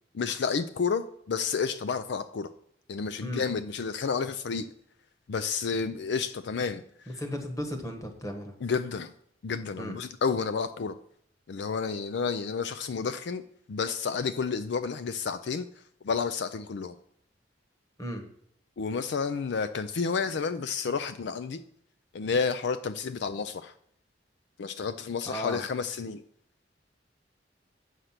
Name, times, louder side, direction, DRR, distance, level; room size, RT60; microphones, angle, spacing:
voice 1, 0.1-2.5 2.9-4.7 5.3-6.8 8.6-9.1 9.4-10.9 11.5-13.4 13.7-15.7 16.0-17.0 18.8-21.6 22.1-23.7 24.6-26.2, left 5 dB, 70° left, 11 dB, 0.4 m, -30 dB
voice 2, 7.1-8.5 9.8-10.0 18.0-18.2 25.3-25.6, equal, 20° left, 4 dB, 1.3 m, -35 dB
7.9 x 6.4 x 5.8 m, 0.68 s
head